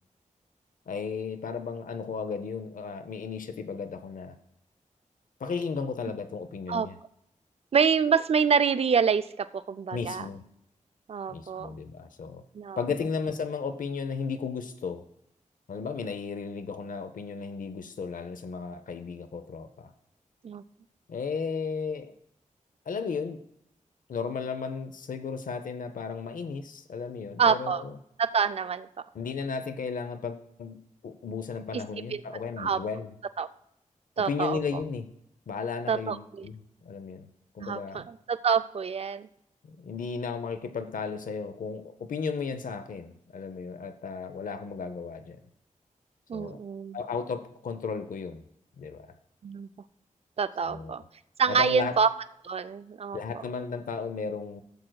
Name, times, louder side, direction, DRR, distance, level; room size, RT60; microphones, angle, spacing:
voice 1, 0.9-4.4 5.4-7.0 9.9-10.4 11.3-12.4 12.8-15.0 15.7-19.9 21.1-22.1 22.9-23.4 24.1-28.0 29.1-30.8 31.0-33.1 34.2-35.1 35.5-37.3 37.5-38.0 39.6-45.4 46.3-46.6 46.9-48.4 48.8-49.1 50.6-51.0 51.5-51.9 53.1-54.6, left 5 dB, 85° left, 10 dB, 0.6 m, -34 dB
voice 2, 7.7-10.3 11.1-11.8 12.5-12.8 20.4-20.6 27.4-27.8 28.2-28.9 31.7-31.8 32.1-32.2 32.6-32.8 33.4-33.5 34.2-34.6 35.9-36.5 37.6-39.3 46.3-47.0 49.4-49.7 50.4-51.0 51.4-52.1 52.4-53.2, right 6 dB, 50° right, 12 dB, 0.4 m, -26 dB
15.5 x 7.6 x 2.3 m, 0.75 s
wide cardioid pair, 145°, 14 cm